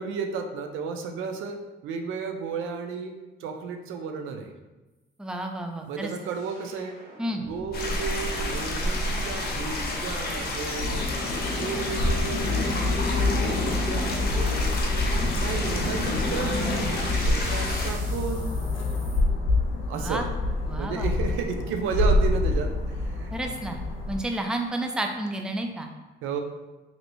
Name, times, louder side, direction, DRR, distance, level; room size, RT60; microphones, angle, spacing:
voice 1, 0.0-1.6 1.8-3.1 3.4-4.5 5.9-6.9 7.5-11.1 11.5-14.8 15.4-18.5 19.9-20.2 20.8-22.7 23.0-23.3 26.2-26.4, right 5 dB, 85° right, 5 dB, 0.4 m, -33 dB
voice 2, 5.2-6.1 7.2-7.4 19.9-20.3 20.7-21.3 23.3-23.8 24.1-25.9, right 1 dB, 5° right, 4 dB, 0.3 m, -31 dB
sound 1, 6.0-8.4 14.2-19.2, right 1 dB, 40° right, 1.0 m, -43 dB
sound 2, 7.7-17.9, left 1 dB, 50° left, 0.7 m, -30 dB
sound 3, 10.8-24.2, left 2 dB, 85° left, 0.6 m, -27 dB
3.0 x 2.6 x 3.0 m, 1.1 s
cardioid pair, 90°, 20 cm